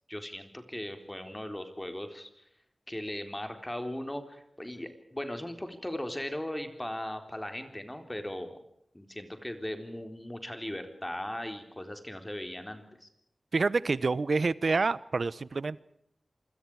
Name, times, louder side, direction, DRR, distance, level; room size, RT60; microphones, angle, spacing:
voice 1, 0.1-2.3 2.9-8.6 8.9-13.1, left 1 dB, 15° left, 7 dB, 4.0 m, -38 dB
voice 2, 13.5-15.8, right 4 dB, 65° right, 19 dB, 0.9 m, -27 dB
27.5 x 26.5 x 4.9 m, 0.73 s
wide cardioid pair, 90°, 0 cm